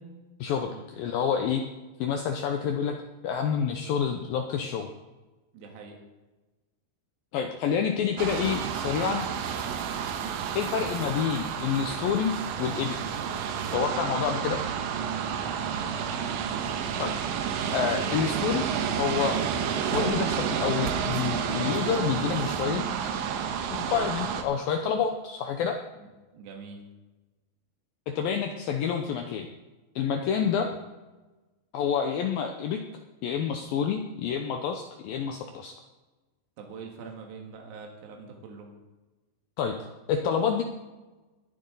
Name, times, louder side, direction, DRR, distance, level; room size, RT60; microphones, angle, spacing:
voice 1, 0.4-1.6 2.0-2.9 3.2-4.9 7.3-9.3 10.6-12.3 12.6-13.2 13.7-14.6 17.0-17.1 17.7-18.7 19.0-19.4 19.8-22.8 23.7-25.8 28.1-29.5 30.0-30.7 31.7-32.8 33.2-35.8 39.6-39.8 40.1-40.6, left 7 dB, 80° left, 4 dB, 2.1 m, -28 dB
voice 2, 5.5-6.0 15.3-16.0 26.0-26.8 30.3-30.7 36.6-38.7, right 5 dB, 70° right, 1 dB, 3.8 m, -44 dB
sound 1, 8.2-24.4, right 7 dB, 85° right, 3.4 m, -30 dB
20.5 x 10.5 x 4.0 m, 1.2 s
omnidirectional pair, 5.1 m